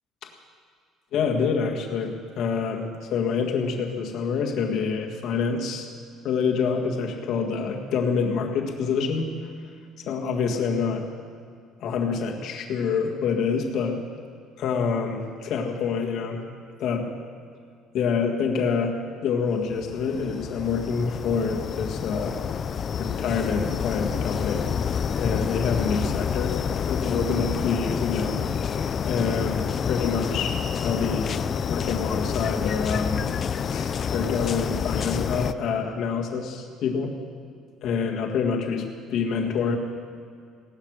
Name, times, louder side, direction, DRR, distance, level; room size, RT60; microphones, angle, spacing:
voice 1, 1.1-5.9 6.2-9.5 10.1-11.1 11.8-14.0 14.6-16.4 16.8-17.1 17.9-22.4 23.0-24.7 25.2-26.6 26.9-28.4 29.1-30.5 30.8-31.4 31.7-33.3 33.7-37.2 37.8-39.8, left 5 dB, 50° left, 2 dB, 1.8 m, -27 dB
sound 1, 19.7-35.5, left 7 dB, 30° left, 0.4 m, -28 dB
17.0 x 12.0 x 6.5 m, 2.3 s
cardioid pair, 170°, 0 cm